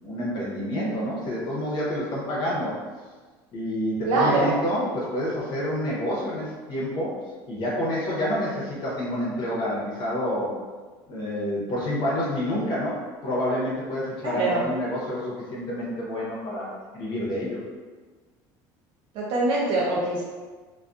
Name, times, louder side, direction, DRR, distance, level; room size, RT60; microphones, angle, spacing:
voice 1, 0.0-2.8 3.5-7.1 7.5-10.5 11.1-16.7 16.9-17.6, equal, 50° left, -5 dB, 0.8 m, -28 dB
voice 2, 4.1-4.6 14.2-14.7 19.1-20.2, right 2 dB, 60° right, -5 dB, 0.5 m, -23 dB
2.5 x 2.3 x 2.3 m, 1.4 s
supercardioid pair, 110°, 10 cm